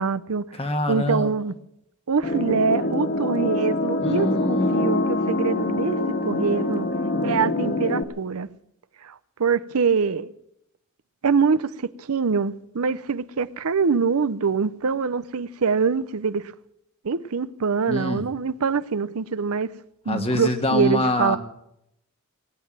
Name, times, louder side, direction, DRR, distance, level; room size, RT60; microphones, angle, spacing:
voice 1, 0.0-0.5 0.9-1.5 2.1-6.0 6.2-6.9 7.2-8.5 9.0-10.3 11.2-16.5 17.0-19.7 20.1-21.4, right 5 dB, 80° right, 0.6 m, -24 dB
voice 2, 0.6-1.3 4.0-4.9 17.9-18.2 20.1-21.4, left 1 dB, 25° left, 1.5 m, -25 dB
sound 1, 2.2-8.0, left 2 dB, 45° left, 1.0 m, -25 dB
19.5 x 9.4 x 7.5 m
head